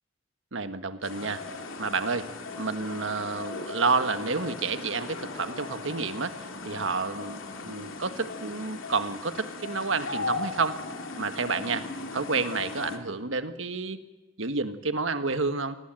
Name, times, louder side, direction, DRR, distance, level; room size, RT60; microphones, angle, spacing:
voice 1, 0.5-1.5 1.8-2.3 2.6-10.8 11.2-14.0 14.4-15.8, right 4 dB, 70° right, 9 dB, 1.5 m, -30 dB
sound 1, 1.0-13.0, left 3 dB, 80° left, 2.7 m, -38 dB
27.5 x 19.5 x 9.0 m, 1.1 s
head